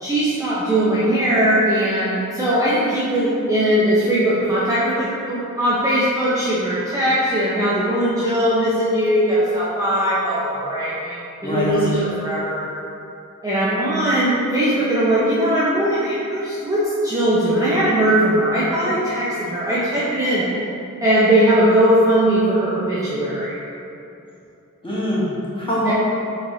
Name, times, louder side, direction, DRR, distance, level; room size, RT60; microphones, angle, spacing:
voice 1, 0.0-12.7 13.4-20.5 21.0-23.5 25.9-26.0, right 1 dB, 10° right, -10 dB, 0.6 m, -19 dB
voice 2, 11.4-11.7 24.8-25.9, equal, 15° left, -9 dB, 1.2 m, -23 dB
4.1 x 3.1 x 2.7 m, 2.7 s
wide cardioid pair, 60°, 34 cm